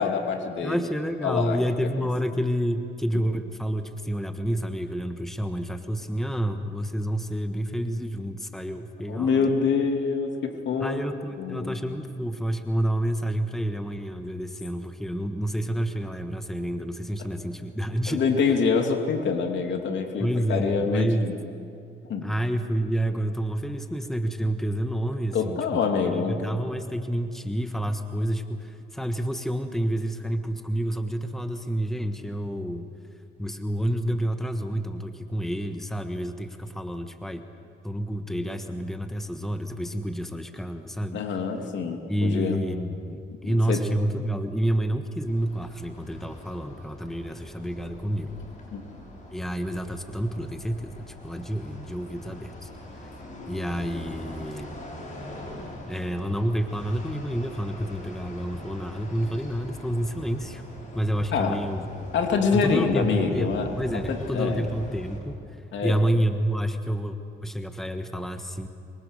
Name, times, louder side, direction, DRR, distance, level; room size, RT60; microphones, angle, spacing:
voice 1, 0.0-0.8 1.2-1.6 2.0-2.1 9.1-11.0 11.4-11.8 18.1-21.3 22.1-22.3 25.3-26.4 41.1-42.6 43.4-43.8 48.7-48.8 61.3-61.6 62.1-64.6 65.7-66.0, left 5 dB, 70° left, 3 dB, 2.8 m, -26 dB
voice 2, 0.6-9.6 10.8-18.4 20.2-21.3 22.2-32.9 33.4-37.4 37.8-41.3 42.1-48.4 49.3-52.7 53.0-53.1 53.5-54.8 55.9-60.6 60.9-61.9 62.5-65.4 65.8-68.7, right 1 dB, ahead, 6 dB, 1.5 m, -29 dB
sound 1, 45.3-65.2, left 1 dB, 40° left, 6.7 m, -42 dB
25.5 x 23.0 x 6.7 m, 2.5 s
cardioid pair, 90°, 20 cm